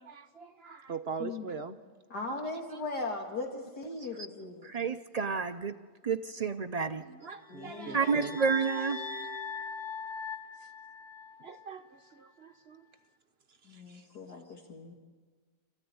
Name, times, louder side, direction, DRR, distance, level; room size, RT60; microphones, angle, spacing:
voice 1, 0.0-1.8 2.7-2.8 7.0-8.5 8.8-8.9 11.4-12.9 13.5-14.1, right 5 dB, 45° right, 8 dB, 1.0 m, -42 dB
voice 2, 2.1-4.7 7.5-8.0 13.7-14.9, left 3 dB, 70° left, 1 dB, 2.5 m, -38 dB
voice 3, 4.6-5.8 6.0-7.0 7.9-9.0, right 5 dB, 85° right, 7 dB, 0.3 m, -30 dB
sound 1, 7.4-11.7, left 4 dB, 30° left, 1.9 m, -41 dB
28.0 x 14.5 x 9.6 m, 1.4 s
omnidirectional pair, 1.8 m